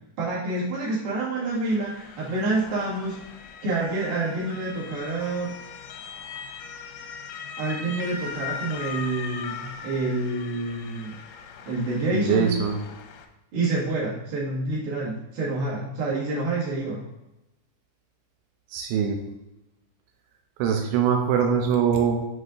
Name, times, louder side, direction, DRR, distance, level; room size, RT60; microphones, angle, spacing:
voice 1, 0.2-3.2 3.6-5.5 7.6-11.1 11.7-12.5 13.5-17.0, right 2 dB, 60° right, -6 dB, 3.3 m, -28 dB
Motor vehicle (road) / Siren, 1.4-13.3, left 6 dB, 90° left, 3.1 m, -40 dB
voice 2, 12.1-12.8 18.7-19.2 20.6-22.2, right 7 dB, 85° right, 3 dB, 2.5 m, -22 dB
7.9 x 5.4 x 2.5 m, 0.95 s
omnidirectional pair, 5.6 m